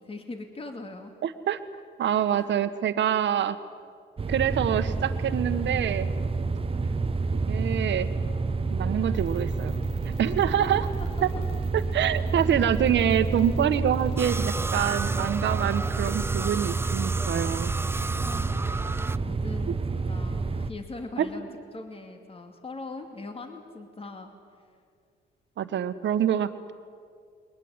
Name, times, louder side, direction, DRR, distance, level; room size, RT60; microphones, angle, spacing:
voice 1, 0.0-1.1 2.3-2.5 6.7-7.3 10.6-11.4 18.2-18.8 19.2-24.3, left 2 dB, 30° left, 5 dB, 2.6 m, -41 dB
voice 2, 1.2-1.6 2.0-3.6 4.3-6.1 7.3-8.1 8.7-9.7 10.2-10.9 11.2-11.3 11.9-17.7 21.2-21.3 25.6-26.7, right 9 dB, 65° right, 10 dB, 1.4 m, -26 dB
sound 1, 4.2-20.7, right 3 dB, 30° right, 0.9 m, -29 dB
sound 2, 9.1-16.3, left 3 dB, 85° left, 4.6 m, -53 dB
sound 3, 14.2-19.2, right 3 dB, 10° right, 0.5 m, -33 dB
22.0 x 20.0 x 9.9 m, 2.2 s
cardioid pair, 90°, 20 cm